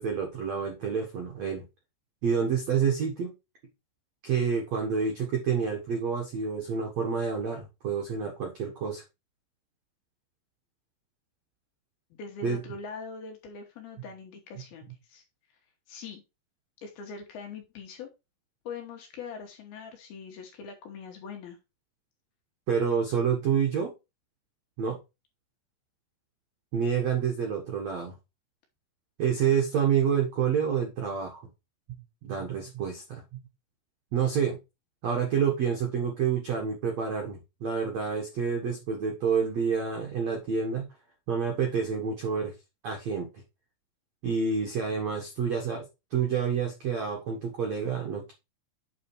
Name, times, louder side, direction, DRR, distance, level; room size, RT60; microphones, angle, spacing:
voice 1, 0.0-1.6 2.2-3.3 4.2-9.0 12.4-12.6 22.7-23.9 24.8-25.0 26.7-28.1 29.2-31.5 32.2-33.2 34.1-34.6 35.0-40.8 41.3-42.5 42.8-43.3 44.2-45.8 46.1-48.3, right 6 dB, 65° right, 1 dB, 1.7 m, -28 dB
voice 2, 12.1-15.2 15.9-16.2 16.8-18.1 18.7-21.6, left 5 dB, 65° left, 3 dB, 2.8 m, -42 dB
8.7 x 4.1 x 4.6 m, 0.25 s
omnidirectional pair, 5.4 m